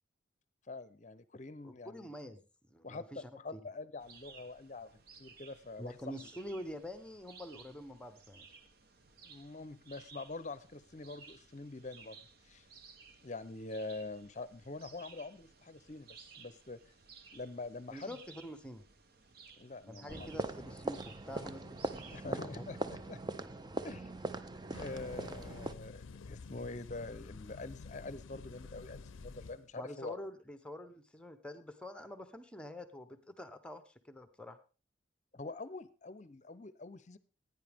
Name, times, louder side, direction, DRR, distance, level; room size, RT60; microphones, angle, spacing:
voice 1, 0.7-2.1 2.8-4.9 5.2-6.0 9.2-12.7 13.2-16.8 17.3-18.2 19.6-20.3 22.1-23.2 23.8-24.1 24.8-30.2 35.3-37.2, left 3 dB, 35° left, 15 dB, 0.7 m, -45 dB
voice 2, 1.6-2.4 2.7-3.6 5.8-8.6 17.9-18.8 19.9-22.6 29.8-34.6, equal, 5° left, 9 dB, 0.8 m, -46 dB
sound 1, 4.0-22.9, right 5 dB, 50° right, 0.9 m, -58 dB
sound 2, 20.1-25.7, right 2 dB, 20° right, 0.5 m, -41 dB
sound 3, 24.7-29.7, left 4 dB, 80° left, 0.5 m, -50 dB
16.0 x 9.5 x 3.5 m, 0.34 s
head